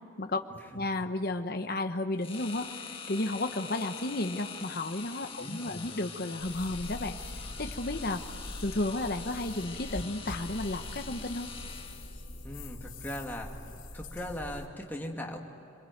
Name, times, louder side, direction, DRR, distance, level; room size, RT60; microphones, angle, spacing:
voice 1, 0.7-2.7 3.1-7.2 7.6-8.2 8.6-11.5, left 2 dB, 45° left, 6 dB, 1.0 m, -32 dB
sound 1, 2.2-12.3, left 6 dB, 25° left, 1.7 m, -44 dB
voice 2, 5.4-6.0 12.4-13.5 13.9-15.4, left 1 dB, 10° left, 0 dB, 2.3 m, -39 dB
sound 2, 6.4-14.7, left 1 dB, 70° left, 2.8 m, -43 dB
27.5 x 22.0 x 9.4 m, 3.0 s
head